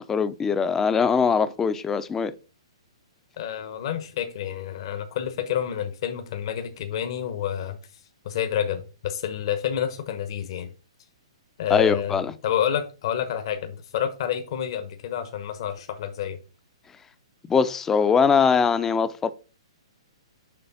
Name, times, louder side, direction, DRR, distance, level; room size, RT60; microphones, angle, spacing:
voice 1, 0.0-2.3 11.7-12.3 17.5-19.3, left 6 dB, 10° left, 0.5 m, -22 dB
voice 2, 3.4-7.8 8.2-10.7 11.6-16.4, left 9 dB, 55° left, 0.9 m, -29 dB
6.9 x 3.3 x 5.4 m
hypercardioid pair, 145°, 3 cm